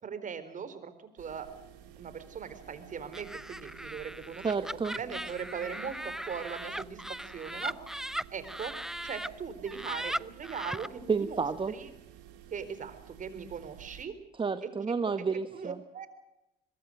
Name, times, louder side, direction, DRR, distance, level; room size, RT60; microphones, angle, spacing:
voice 1, 0.0-1.5 2.0-7.8 8.3-11.9 12.5-14.1 15.5-16.1, right 6 dB, 50° right, 11 dB, 4.3 m, -40 dB
sound 1, 1.2-14.0, right 10 dB, 80° right, 2.8 m, -53 dB
Laughter, 3.1-9.3 9.7-10.9, right 1 dB, 5° right, 0.7 m, -38 dB
voice 2, 4.4-5.0 11.1-11.7 14.3-15.8, right 5 dB, 30° right, 10 dB, 1.3 m, -30 dB
23.5 x 22.0 x 6.5 m, 0.91 s
supercardioid pair, 65°, 18 cm